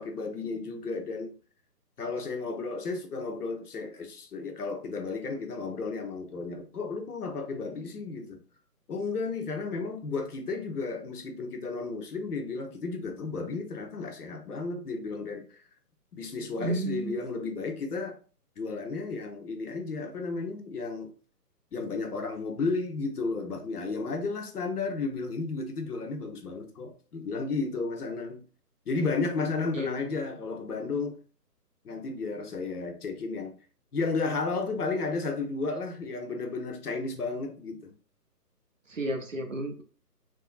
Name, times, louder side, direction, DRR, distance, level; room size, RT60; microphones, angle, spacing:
voice 1, 0.0-1.3 2.0-8.4 8.9-15.6 16.1-18.2 18.6-21.1 21.7-28.4 28.9-31.2 31.8-33.5 33.9-37.9, left 3 dB, 70° left, 0.8 m, -33 dB
voice 2, 16.6-17.2 29.7-29.9 38.9-39.8, right 1 dB, 55° right, 0.6 m, -32 dB
3.6 x 2.1 x 2.3 m
hypercardioid pair, 180°, 48 cm